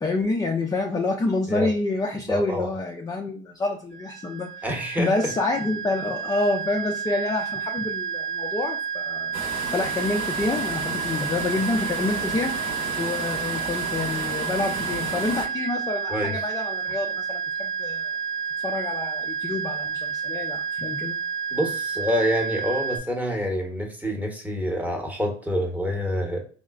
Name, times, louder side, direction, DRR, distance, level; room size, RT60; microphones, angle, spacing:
voice 1, 0.0-4.6 5.0-9.3 9.7-12.5 13.0-18.1 18.6-21.2, left 2 dB, 15° left, 1 dB, 0.3 m, -27 dB
voice 2, 2.3-2.7 4.6-5.3 16.1-16.4 21.5-26.4, equal, 5° right, 1 dB, 0.8 m, -27 dB
sound 1, 3.9-23.0, right 6 dB, 85° right, 0.9 m, -30 dB
sound 2, 9.3-15.5, right 3 dB, 40° right, 0.9 m, -33 dB
3.6 x 2.1 x 2.3 m, 0.42 s
supercardioid pair, 90°, 31 cm